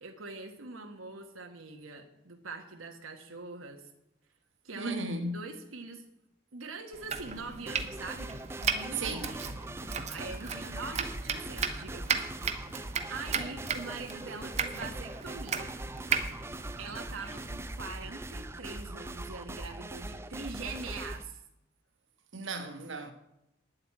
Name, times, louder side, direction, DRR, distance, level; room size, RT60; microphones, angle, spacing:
voice 1, 0.0-3.9 4.6-5.0 5.3-6.0 6.5-8.3 8.6-9.5 10.1-12.1 13.1-15.7 16.8-21.4, right 3 dB, 90° right, 1.3 m, -43 dB
voice 2, 4.7-5.4 8.9-9.4 22.3-23.1, right 2 dB, 70° right, 1.4 m, -35 dB
Domestic sounds home sounds, 6.9-17.6, right 6 dB, 35° right, 0.9 m, -36 dB
sound 1, 7.7-21.2, right 2 dB, 10° right, 0.4 m, -41 dB
9.9 x 7.9 x 8.6 m
head